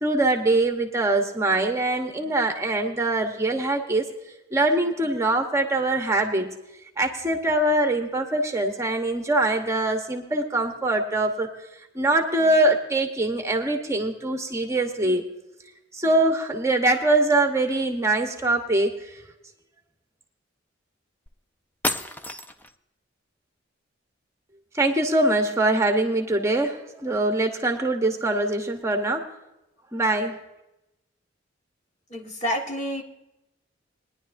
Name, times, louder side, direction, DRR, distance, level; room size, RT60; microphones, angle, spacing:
voice 1, 0.0-4.1 4.5-6.5 7.0-11.5 11.9-15.2 15.9-19.2 24.7-29.3 29.9-30.4, right 2 dB, 15° right, 3 dB, 1.0 m, -23 dB
sound 1, 21.3-21.4 21.8-22.8, left 1 dB, 10° left, 0.5 m, -30 dB
voice 2, 32.1-33.0, equal, 40° left, 2 dB, 1.5 m, -28 dB
20.5 x 10.5 x 2.6 m, 0.92 s
head